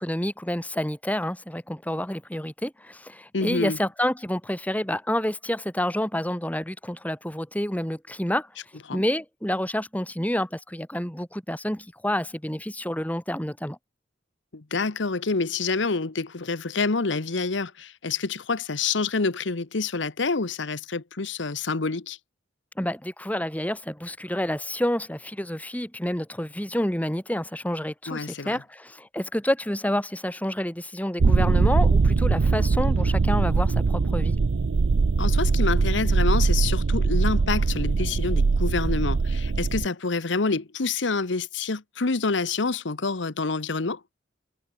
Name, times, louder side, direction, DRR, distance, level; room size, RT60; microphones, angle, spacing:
voice 1, 0.0-8.5 8.9-13.8 22.8-34.4, left 1 dB, 10° left, 3.1 m, -29 dB
voice 2, 3.3-3.8 8.9-9.0 14.5-22.2 28.1-28.6 35.2-44.0, left 4 dB, 75° left, 1.1 m, -27 dB
sound 1, 31.2-39.9, right 4 dB, 90° right, 0.6 m, -21 dB
head